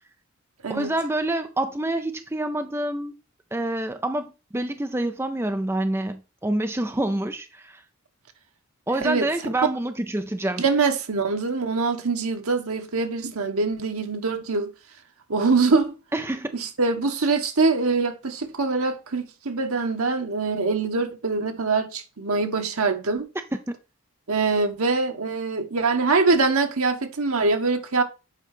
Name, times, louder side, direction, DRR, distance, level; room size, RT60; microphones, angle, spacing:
voice 1, 0.7-3.1 3.5-7.8 8.9-10.6 16.1-16.5, right 1 dB, 10° right, 0.5 m, -27 dB
voice 2, 10.6-14.7 15.3-15.9 16.5-23.3 24.3-28.0, right 4 dB, 85° right, 1.3 m, -23 dB
8.1 x 5.0 x 4.4 m
head